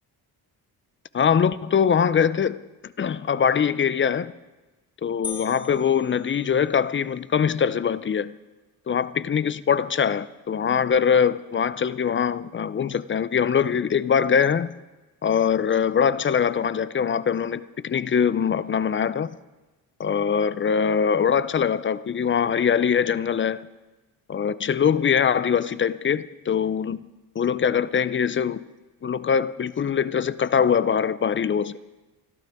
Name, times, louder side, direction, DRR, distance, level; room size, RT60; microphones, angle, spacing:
voice 1, 1.1-4.3 5.0-8.3 8.9-14.7 15.2-19.4 20.0-23.7 24.3-27.0 27.4-28.6 29.0-31.7, left 7 dB, 30° left, 0.5 m, -22 dB
sound 1, 5.2-7.0, left 5 dB, 10° left, 1.7 m, -39 dB
26.0 x 12.0 x 3.6 m
cardioid pair, 95°, 40 cm